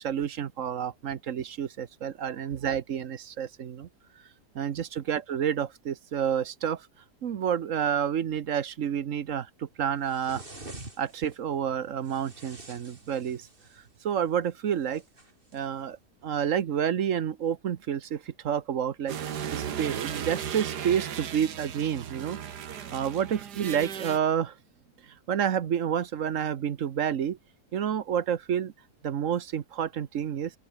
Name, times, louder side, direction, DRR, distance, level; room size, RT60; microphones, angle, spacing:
voice 1, 0.0-3.9 4.5-6.9 7.2-10.4 11.0-13.5 14.0-15.0 15.5-16.0 16.2-19.2 19.5-22.4 22.9-24.5 25.3-27.4 27.7-28.7 29.0-30.5, right 8 dB, 55° right, 1.2 m, -29 dB
sound 1, 10.0-11.4 12.0-13.9 14.9-15.6, right 2 dB, 35° right, 4.1 m, -47 dB
sound 2, 19.1-24.2, right 8 dB, 85° right, 1.9 m, -36 dB
open air
omnidirectional pair, 1.7 m